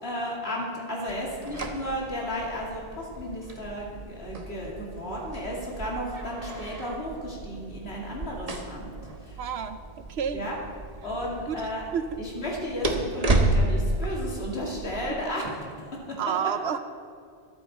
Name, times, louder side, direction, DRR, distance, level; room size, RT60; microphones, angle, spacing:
voice 1, 0.0-8.9 9.2-9.4 10.3-10.6 11.0-11.8 12.2-15.4 16.1-16.2, equal, 80° left, -3 dB, 2.8 m, -33 dB
sound 1, 1.1-15.0, right 2 dB, 40° right, 1.2 m, -32 dB
voice 2, 9.4-10.5 11.5-12.2 16.2-16.8, right 7 dB, 80° right, 9 dB, 0.9 m, -30 dB
24.5 x 8.9 x 4.3 m, 2.3 s
omnidirectional pair, 1.1 m